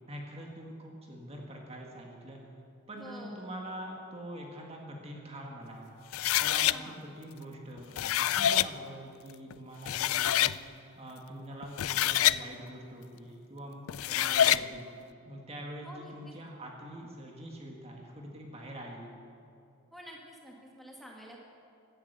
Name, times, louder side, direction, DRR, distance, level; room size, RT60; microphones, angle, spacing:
voice 1, 0.1-2.4 2.9-5.9 6.4-14.9 15.3-19.1, right 1 dB, 25° right, 0 dB, 1.8 m, -44 dB
voice 2, 3.0-3.5 6.7-6.9 14.2-14.7 15.8-16.3 19.9-21.4, equal, ahead, -2 dB, 1.9 m, -48 dB
sound 1, 6.1-6.8 7.8-8.7 9.5-9.6 9.9-10.6 11.6-12.4 13.9-14.6, left 12 dB, 75° left, 0.4 m, -26 dB
16.5 x 12.0 x 6.8 m, 2.6 s
head